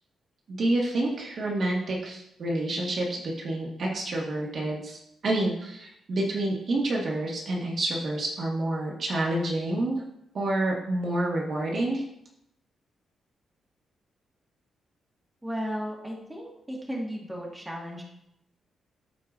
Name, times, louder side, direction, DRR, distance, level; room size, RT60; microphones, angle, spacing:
voice 1, 0.5-10.0 10.3-12.0, right 1 dB, 45° right, -2 dB, 1.4 m, -28 dB
voice 2, 15.4-18.0, equal, 10° right, -3 dB, 1.6 m, -35 dB
14.0 x 4.7 x 2.5 m, 0.79 s
wide cardioid pair, 155°, 0 cm